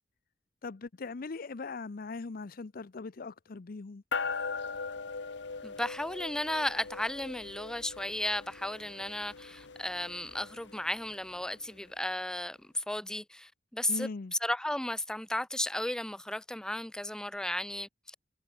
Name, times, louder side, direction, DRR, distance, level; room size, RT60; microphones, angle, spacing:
voice 1, 0.6-4.0 13.9-14.3, left 3 dB, 50° left, 0.6 m, -40 dB
sound 1, 4.1-11.8, left 4 dB, 70° left, 1.1 m, -40 dB
voice 2, 5.6-18.2, left 1 dB, 5° left, 0.3 m, -34 dB
head